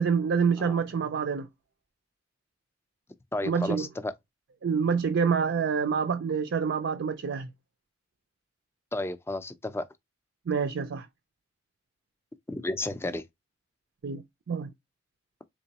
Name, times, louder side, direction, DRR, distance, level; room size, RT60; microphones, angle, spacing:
voice 1, 0.0-1.5 3.4-3.9 4.6-7.5 10.5-11.1 14.0-14.7, right 6 dB, 65° right, 0.4 m, -27 dB
voice 2, 3.3-4.1 8.9-9.8 12.5-13.2, left 2 dB, 15° left, 0.4 m, -32 dB
3.8 x 3.0 x 2.8 m
head